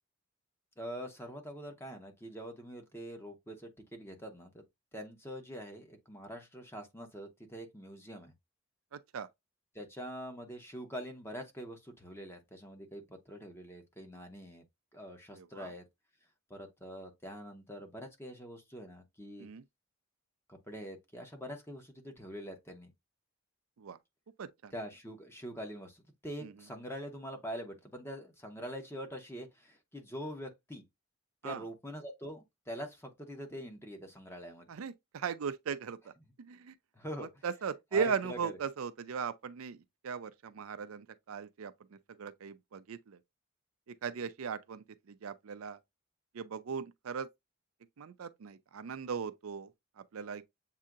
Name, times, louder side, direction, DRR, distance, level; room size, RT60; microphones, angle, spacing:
voice 1, 0.8-4.6 4.9-8.3 9.7-14.6 14.9-15.8 16.5-19.5 20.5-22.9 24.7-30.8 31.4-34.7 36.9-37.4 37.9-38.6, equal, 10° left, 1.0 m, -44 dB
voice 2, 8.9-9.3 15.3-15.7 19.4-19.6 23.8-24.0 24.4-24.7 26.4-26.5 31.4-31.6 34.7-36.1 36.4-36.7 37.2-43.2 43.9-45.8 46.3-47.3 48.0-49.7 50.0-50.4, right 6 dB, 75° right, 0.5 m, -38 dB
7.4 x 2.8 x 2.4 m
head